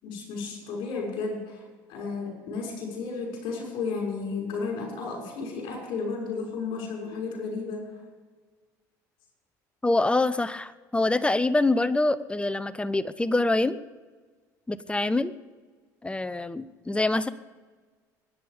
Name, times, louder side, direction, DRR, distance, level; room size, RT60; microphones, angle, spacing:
voice 1, 0.0-1.6 1.9-7.9, left 4 dB, 65° left, 0 dB, 6.3 m, -33 dB
voice 2, 9.8-13.8 14.7-15.3 16.0-17.3, left 2 dB, 10° left, 15 dB, 0.8 m, -25 dB
23.0 x 9.7 x 5.2 m, 1.4 s
hypercardioid pair, 75°, 9 cm